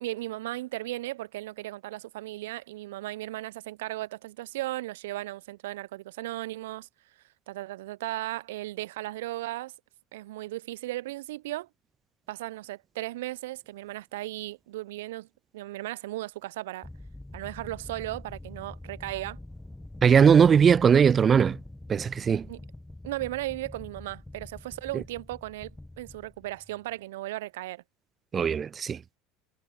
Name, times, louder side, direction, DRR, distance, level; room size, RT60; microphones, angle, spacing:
voice 1, 0.0-6.9 7.5-9.7 10.1-11.7 12.3-15.3 15.5-16.9 17.3-19.4 22.5-22.6 23.0-25.7 26.0-27.8, right 17 dB, 70° right, 0.7 m, -36 dB
sound 1, 16.8-26.9, left 1 dB, 5° left, 1.5 m, -45 dB
voice 2, 20.0-21.6 21.9-22.5 28.3-29.0, right 7 dB, 30° right, 0.3 m, -19 dB
hypercardioid pair, 75°, 0 cm